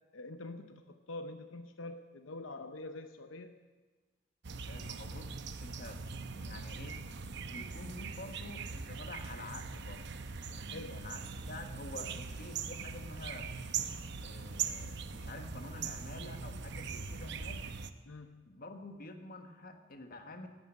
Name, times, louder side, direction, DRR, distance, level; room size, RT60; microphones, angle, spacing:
voice 1, 0.1-3.5 10.7-11.1 18.1-18.5, left 2 dB, 85° left, 7 dB, 0.8 m, -45 dB
sound 1, 4.4-17.9, right 5 dB, 60° right, 0.8 m, -41 dB
voice 2, 4.7-7.1 7.5-10.2 10.5-13.5 14.2-17.6 18.4-20.5, left 2 dB, 50° left, 6 dB, 1.4 m, -48 dB
17.0 x 9.5 x 8.6 m, 1.3 s
head